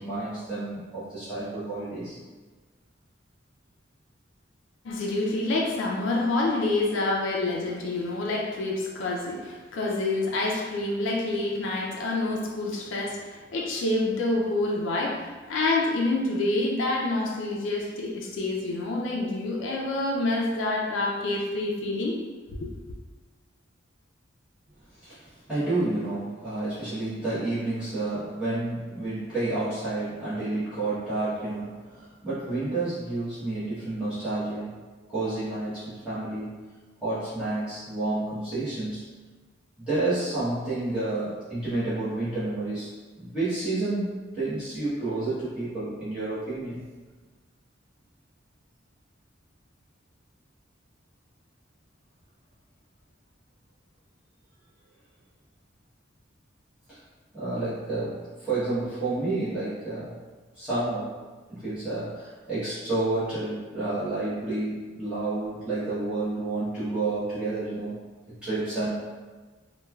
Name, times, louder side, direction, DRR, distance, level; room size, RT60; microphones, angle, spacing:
voice 1, 0.0-2.2 25.0-34.7 35.1-36.5 37.0-39.0 39.8-42.9 43.2-46.8 56.9-57.0 57.3-60.1 60.5-61.1 61.5-67.9 68.4-68.9, right 2 dB, 5° right, -15 dB, 0.9 m, -30 dB
voice 2, 4.8-22.2 22.5-22.7, left 2 dB, 70° left, -2 dB, 0.4 m, -27 dB
3.1 x 2.2 x 2.2 m, 1.3 s
head